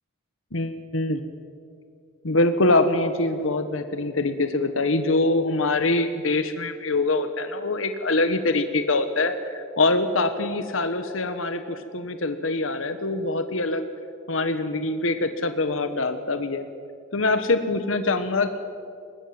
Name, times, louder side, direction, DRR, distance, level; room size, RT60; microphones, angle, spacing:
voice 1, 0.5-1.2 2.2-13.8 14.3-16.7 17.1-18.6, left 2 dB, 80° left, 9 dB, 1.3 m, -24 dB
22.0 x 19.0 x 8.8 m, 2.4 s
head